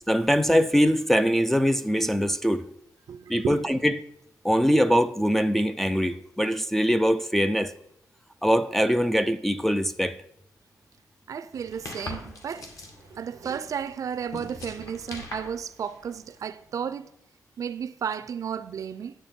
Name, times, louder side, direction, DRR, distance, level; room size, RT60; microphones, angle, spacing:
voice 1, 0.1-2.7 3.3-4.0 4.4-7.7 8.4-10.2, equal, 5° left, 0.3 m, -22 dB
voice 2, 3.1-3.7 11.3-12.7 13.1-17.1 17.6-19.1, right 7 dB, 55° right, 0.5 m, -33 dB
sound 1, 11.5-16.5, left 2 dB, 55° left, 1.8 m, -42 dB
9.3 x 7.7 x 4.4 m
wide cardioid pair, 145°, 7 cm